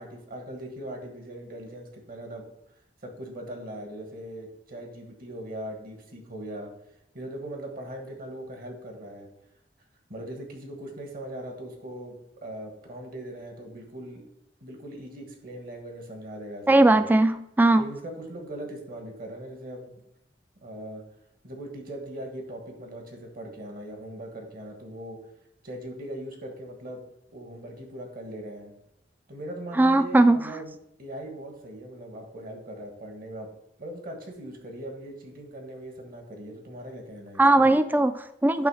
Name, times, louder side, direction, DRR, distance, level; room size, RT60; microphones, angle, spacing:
voice 1, 0.0-2.5 3.0-6.7 7.1-9.3 10.1-14.2 14.6-17.1 17.8-20.0 20.6-21.0 21.4-25.2 25.6-27.0 27.3-28.7 29.3-33.5 33.8-37.7, right 1 dB, 55° right, 3 dB, 1.6 m, -40 dB
voice 2, 16.7-17.8 29.8-30.5 37.4-38.7, right 2 dB, 10° right, 11 dB, 0.3 m, -19 dB
8.9 x 3.2 x 6.4 m, 0.79 s
head